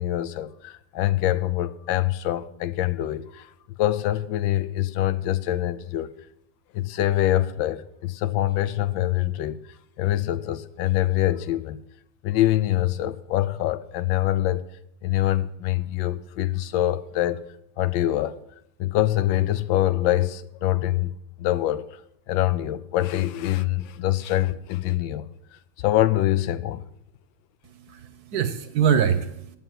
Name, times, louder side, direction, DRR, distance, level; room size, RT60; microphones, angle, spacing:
voice 1, 0.0-3.5 3.8-6.3 6.7-9.7 10.0-11.8 12.2-14.7 15.0-17.4 17.8-18.4 18.8-21.1 21.4-22.0 22.3-26.8, left 14 dB, 85° left, 1.4 m, -24 dB
voice 2, 27.6-29.6, right 7 dB, 60° right, 1.1 m, -24 dB
9.1 x 7.2 x 9.0 m
omnidirectional pair, 2.1 m